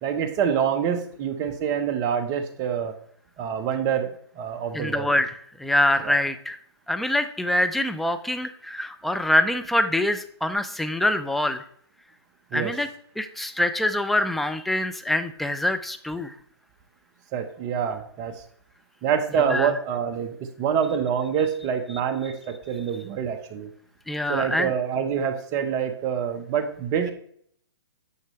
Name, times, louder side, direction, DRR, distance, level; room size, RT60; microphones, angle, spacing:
voice 1, 0.0-2.9 3.4-5.1 6.0-6.2 12.5-12.7 17.3-18.4 19.0-23.7 24.3-27.1, right 7 dB, 25° right, 7 dB, 1.0 m, -26 dB
voice 2, 4.7-6.6 6.9-11.6 12.5-12.9 13.2-16.3 19.4-19.7 24.1-24.7, left 1 dB, ahead, 9 dB, 0.3 m, -25 dB
9.6 x 6.5 x 3.2 m, 0.63 s
hypercardioid pair, 140°, 14 cm